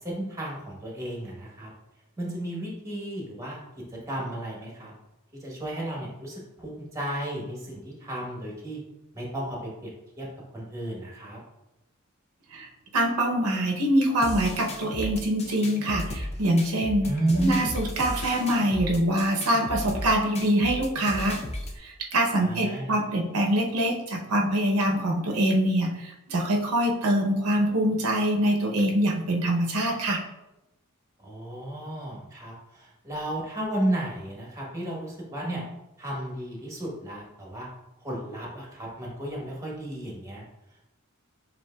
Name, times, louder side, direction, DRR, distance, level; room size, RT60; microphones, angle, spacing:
voice 1, 0.0-1.7 2.2-3.6 4.1-4.9 5.4-8.8 9.1-9.9 10.2-10.3 10.5-11.4 17.0-17.6 22.4-23.0 31.2-35.6 36.0-37.7 38.0-40.4, right 1 dB, 15° right, -3 dB, 1.0 m, -33 dB
voice 2, 12.5-17.1 17.4-21.4 21.8-30.2, right 1 dB, 80° right, 0 dB, 0.7 m, -24 dB
sound 1, 14.2-21.8, left 1 dB, 30° left, 0.5 m, -35 dB
7.2 x 2.6 x 2.2 m, 0.93 s
head